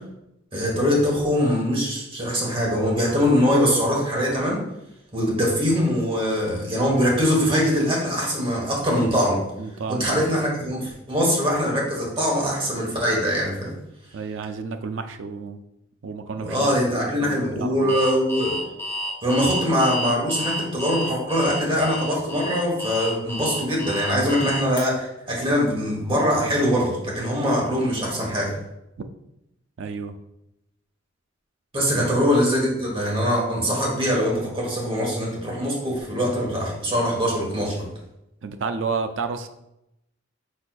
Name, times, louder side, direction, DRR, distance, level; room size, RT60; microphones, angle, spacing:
voice 1, 0.5-4.6 5.1-9.4 9.9-13.7 16.4-18.6 19.2-28.6 31.7-37.9, equal, 30° right, -3 dB, 1.2 m, -22 dB
voice 2, 9.6-10.3 14.1-15.6 16.0-17.9 29.0-29.1 29.8-30.1 31.9-32.1 38.4-39.5, right 5 dB, 75° right, 8 dB, 0.4 m, -31 dB
Alarm, 17.9-24.8, equal, 15° left, 1.2 m, -30 dB
5.3 x 4.2 x 2.3 m, 0.85 s
head